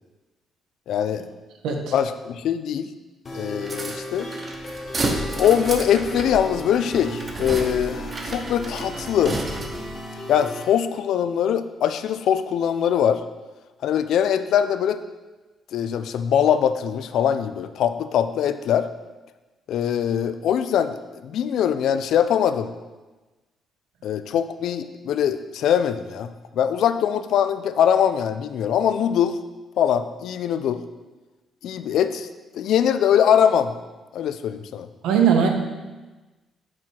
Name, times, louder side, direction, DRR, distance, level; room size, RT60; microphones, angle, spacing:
voice 1, 0.9-1.2 1.9-2.9 3.3-4.3 5.4-9.4 10.3-13.2 13.8-15.0 15.7-18.9 19.7-20.9 21.2-22.7 24.0-26.3 26.6-29.4 29.8-30.8 31.6-32.3 32.5-33.7 34.1-34.9, left 9 dB, 75° left, 11 dB, 0.3 m, -22 dB
sound 1, 3.3-10.6, equal, 40° left, 1.4 m, -35 dB
sound 2, 3.6-10.0, right 2 dB, 35° right, 0.9 m, -31 dB
voice 2, 35.0-35.5, right 7 dB, 90° right, 3 dB, 0.8 m, -19 dB
6.2 x 4.3 x 4.6 m, 1.2 s
cardioid pair, 90°, 0 cm